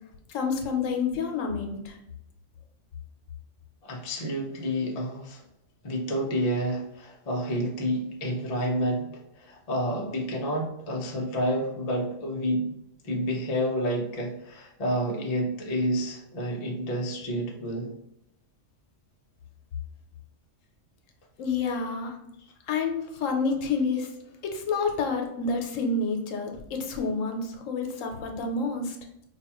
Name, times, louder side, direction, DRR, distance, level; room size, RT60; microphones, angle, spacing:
voice 1, 0.3-2.0 21.4-22.2 22.7-24.1 24.5-29.0, left 4 dB, 80° left, 3 dB, 1.0 m, -29 dB
voice 2, 3.8-5.4 5.8-12.7 13.0-17.9, equal, 40° left, -1 dB, 0.6 m, -29 dB
4.6 x 2.3 x 2.9 m, 0.81 s
omnidirectional pair, 1.3 m